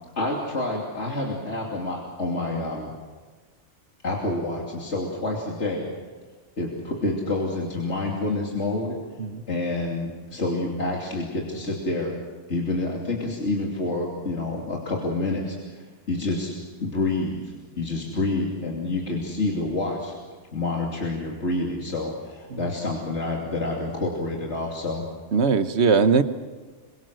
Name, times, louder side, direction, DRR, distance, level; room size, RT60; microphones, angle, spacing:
voice 1, 0.2-2.9 4.0-5.9 6.6-9.0 9.5-12.2 12.5-15.6 16.1-16.5 16.8-20.1 20.5-25.0, left 2 dB, 70° left, -2 dB, 3.3 m, -28 dB
voice 2, 25.3-26.2, right 5 dB, 65° right, 10 dB, 1.4 m, -20 dB
27.0 x 24.5 x 6.4 m, 1.4 s
omnidirectional pair, 1.2 m